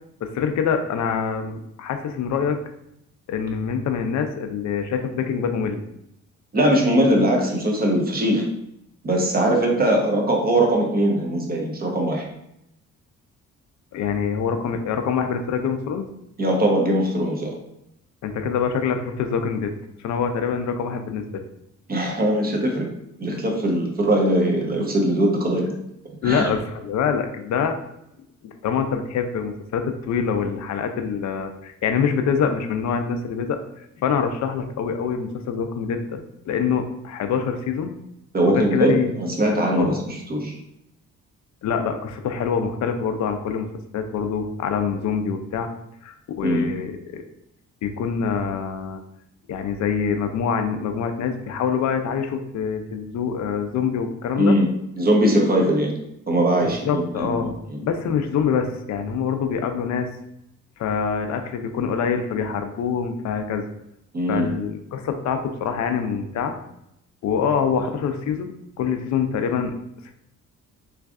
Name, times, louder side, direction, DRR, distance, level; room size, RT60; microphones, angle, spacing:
voice 1, 0.2-2.6 3.3-5.8 13.9-16.1 18.2-19.7 20.0-21.4 26.2-27.8 28.4-33.6 34.0-36.2 36.5-37.9 38.5-39.1 39.8-40.0 41.6-43.7 43.9-45.7 46.0-47.2 47.8-49.0 49.5-54.5 56.9-60.1 60.8-63.6 64.3-66.5 67.2-68.5 68.8-69.7, left 6 dB, 65° left, 7 dB, 0.5 m, -25 dB
voice 2, 6.5-8.5 9.0-12.3 16.4-17.5 21.9-22.9 23.2-25.7 26.2-26.5 38.3-40.6 46.4-46.6 54.4-54.7 55.0-55.9 56.3-57.8 64.1-64.5, right 1 dB, 30° right, 1 dB, 0.9 m, -21 dB
3.2 x 2.5 x 3.5 m, 0.80 s
cardioid pair, 90°, 30 cm